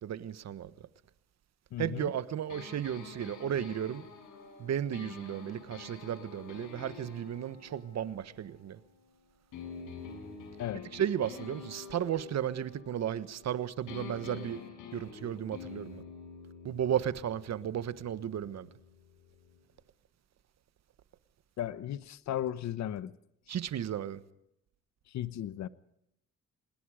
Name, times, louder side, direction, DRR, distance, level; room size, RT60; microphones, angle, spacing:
voice 1, 0.0-0.7 1.8-4.1 4.6-8.8 10.9-14.6 14.9-16.0 16.6-18.7 23.5-24.2, right 10 dB, 60° right, 1.4 m, -34 dB
voice 2, 1.7-2.1 10.6-10.9 21.6-23.1 25.1-25.7, left 11 dB, 65° left, 1.0 m, -35 dB
sound 1, 2.5-9.0 9.5-13.5 13.9-19.6, left 5 dB, 85° left, 6.2 m, -48 dB
25.5 x 20.5 x 5.1 m
cardioid pair, 90°, 30 cm